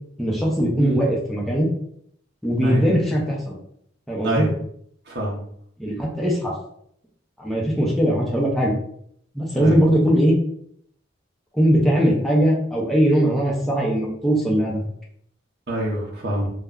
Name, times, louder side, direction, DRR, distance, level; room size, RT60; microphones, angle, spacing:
voice 1, 0.2-1.7 2.4-3.6 4.1-4.5 5.8-6.6 7.4-8.7 9.3-10.4 11.5-14.8, equal, ahead, -4 dB, 0.5 m, -20 dB
voice 2, 5.1-5.4 9.5-9.8 15.7-16.5, right 1 dB, 50° right, -3 dB, 0.6 m, -26 dB
2.2 x 2.1 x 3.6 m, 0.68 s
head